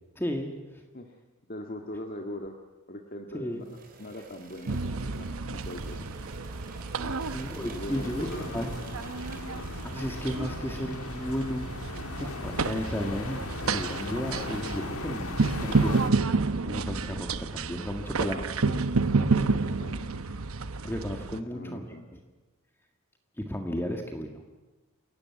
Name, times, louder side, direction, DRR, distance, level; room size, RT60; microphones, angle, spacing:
voice 1, 0.2-0.5 3.3-3.6 7.3-8.7 9.8-16.3 16.6-18.7 19.2-19.4 20.8-21.8 23.4-24.4, equal, 10° left, 3 dB, 1.8 m, -34 dB
voice 2, 1.5-2.6 2.9-6.0 7.0-7.3 7.6-8.7 18.3-19.0 19.4-20.4 21.3-22.1, left 1 dB, 45° left, 2 dB, 1.9 m, -41 dB
sound 1, 3.6-10.7, right 3 dB, 40° right, 4.0 m, -49 dB
sound 2, 4.7-21.4, right 3 dB, 80° right, 0.9 m, -30 dB
sound 3, 7.9-16.1, left 3 dB, 90° left, 1.6 m, -39 dB
28.5 x 17.0 x 9.7 m, 1.2 s
head